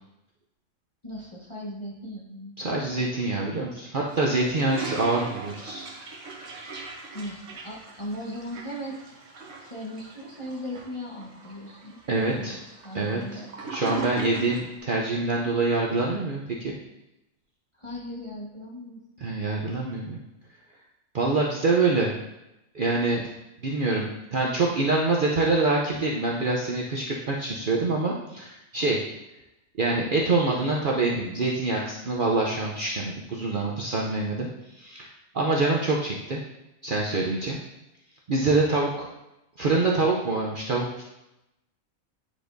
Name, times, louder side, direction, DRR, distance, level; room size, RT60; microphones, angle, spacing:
voice 1, 1.0-3.0 7.1-9.2 9.6-12.6 12.8-13.5 17.8-19.0, equal, 25° left, -4 dB, 0.9 m, -38 dB
voice 2, 2.6-5.8 12.1-12.5 12.9-13.4 13.7-16.7 19.2-20.2 21.1-22.1 22.7-23.2 23.6-29.0 29.8-34.5 34.7-35.1 35.3-36.4 36.8-37.6 38.3-39.1 39.6-41.0, right 3 dB, 50° right, -3 dB, 0.7 m, -25 dB
Toilet flush, 4.1-14.7, right 4 dB, 65° right, 1.3 m, -40 dB
9.0 x 5.0 x 2.6 m, 0.92 s
omnidirectional pair, 1.4 m